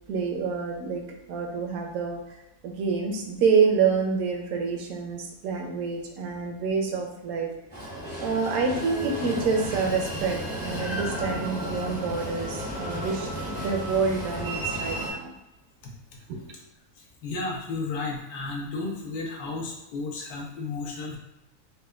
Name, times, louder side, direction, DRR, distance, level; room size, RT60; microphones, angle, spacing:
voice 1, 0.1-1.0 1.3-2.2 2.6-7.5 8.2-15.3 16.3-16.4, right 5 dB, 70° right, 1 dB, 1.0 m, -27 dB
Train, 7.7-15.1, equal, 10° left, 0.5 m, -33 dB
voice 2, 17.2-21.2, left 3 dB, 75° left, -1 dB, 1.1 m, -33 dB
4.1 x 2.2 x 2.3 m, 0.95 s
omnidirectional pair, 1.7 m